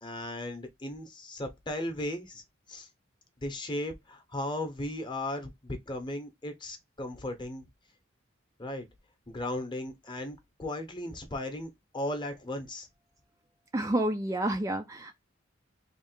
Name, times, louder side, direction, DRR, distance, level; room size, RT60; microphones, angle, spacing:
voice 1, 0.0-2.9 3.4-7.7 8.6-8.9 9.3-12.9, left 1 dB, 25° left, 0.9 m, -36 dB
voice 2, 13.7-15.1, right 1 dB, 15° right, 0.4 m, -29 dB
3.2 x 2.4 x 4.4 m
head